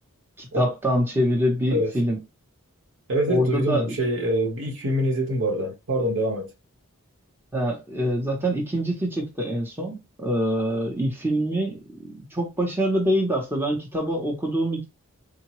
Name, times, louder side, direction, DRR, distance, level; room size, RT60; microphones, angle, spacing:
voice 1, 0.4-2.2 3.3-4.0 7.5-14.8, equal, 10° right, 0.7 m, -25 dB
voice 2, 3.1-6.5, equal, 60° right, 1.2 m, -25 dB
3.7 x 2.2 x 2.9 m
head